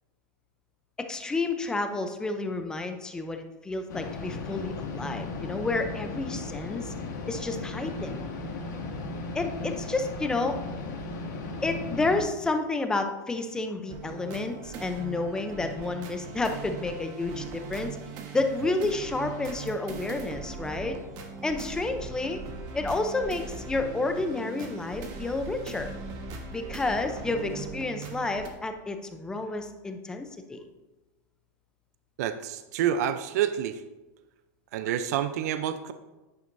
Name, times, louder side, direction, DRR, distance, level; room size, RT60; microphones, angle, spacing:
voice 1, 1.0-6.9 7.3-8.2 9.3-10.6 11.6-18.0 18.3-21.0 21.4-22.4 22.7-25.9 26.5-30.6, left 3 dB, 5° left, 6 dB, 0.6 m, -30 dB
sound 1, 3.9-12.2, left 3 dB, 85° left, 2.0 m, -36 dB
sound 2, 13.9-28.5, right 4 dB, 40° right, 1.3 m, -40 dB
voice 2, 32.2-33.8 34.7-35.9, right 10 dB, 60° right, 11 dB, 0.5 m, -28 dB
9.8 x 9.5 x 2.6 m, 1.1 s
supercardioid pair, 155°, 10 cm